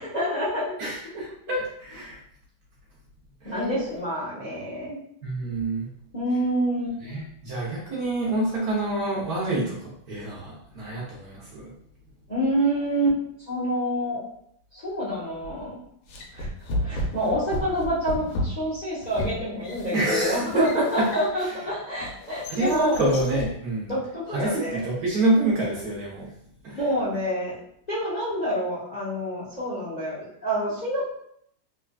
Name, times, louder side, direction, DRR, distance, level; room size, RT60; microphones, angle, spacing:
voice 1, 0.0-0.9 3.4-5.0 6.1-6.9 12.3-13.2 13.5-14.2 14.7-15.8 16.3-16.5 16.8-23.0 23.9-24.8 26.7-27.6 27.9-31.1, equal, 35° left, -9 dB, 0.7 m, -27 dB
voice 2, 0.8-2.2 3.4-3.7 5.2-5.9 7.0-11.7 19.9-21.0 22.5-23.9 24.3-26.3 26.6-26.8, right 2 dB, 60° right, -5 dB, 1.1 m, -27 dB
sound 1, 15.4-15.7 16.1-21.5 22.0-23.6, left 1 dB, 85° left, 1.5 m, -33 dB
3.6 x 3.2 x 2.3 m, 0.70 s
omnidirectional pair, 2.2 m